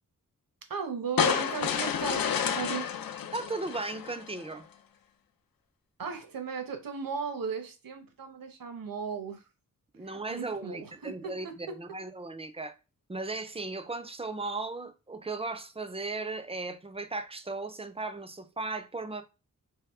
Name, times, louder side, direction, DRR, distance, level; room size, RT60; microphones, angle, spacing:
voice 1, 0.7-2.9 6.0-9.4 10.0-11.8, right 6 dB, 75° right, 0.9 m, -36 dB
sound 1, 1.2-4.4, left 8 dB, 80° left, 0.6 m, -30 dB
voice 2, 3.3-4.6 9.9-12.7 13.1-19.2, right 3 dB, 20° right, 0.4 m, -36 dB
4.8 x 3.2 x 3.4 m
wide cardioid pair, 150°, 34 cm